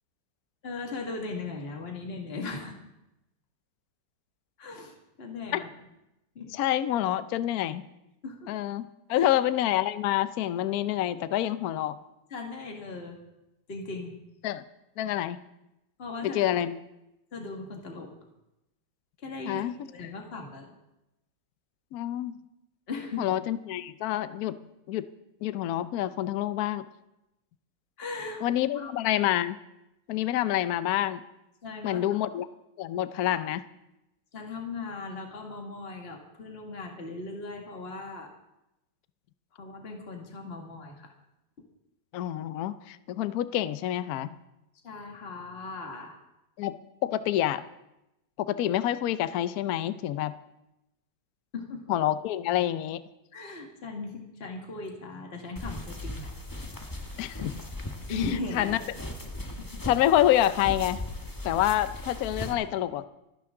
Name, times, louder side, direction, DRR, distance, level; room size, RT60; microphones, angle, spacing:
voice 1, 0.6-2.8 4.6-5.9 6.4-6.5 8.2-8.5 9.1-9.3 12.3-13.2 13.7-14.2 16.0-16.6 17.3-18.1 19.2-20.7 22.9-23.3 28.0-28.4 28.7-28.9 31.6-32.2 34.3-38.3 39.5-41.1 44.8-46.2 51.5-51.9 53.3-56.3 58.1-58.9 59.6-59.8, left 3 dB, 35° left, 1 dB, 2.1 m, -38 dB
voice 2, 6.5-7.8 8.5-12.0 14.4-14.6 15.0-15.4 16.2-16.8 19.5-19.7 21.9-22.4 23.2-24.6 24.9-25.1 25.4-26.8 28.4-29.6 30.1-31.2 31.8-32.5 32.8-33.6 42.1-44.4 46.6-46.8 47.0-47.6 48.4-50.4 51.9-53.0 57.2-57.6 58.5-58.8 59.8-61.0 61.4-63.0, left 12 dB, 65° left, 13 dB, 1.0 m, -27 dB
sound 1, 55.6-62.5, left 1 dB, 15° left, 1.1 m, -38 dB
29.0 x 10.5 x 3.8 m, 0.91 s
omnidirectional pair, 2.0 m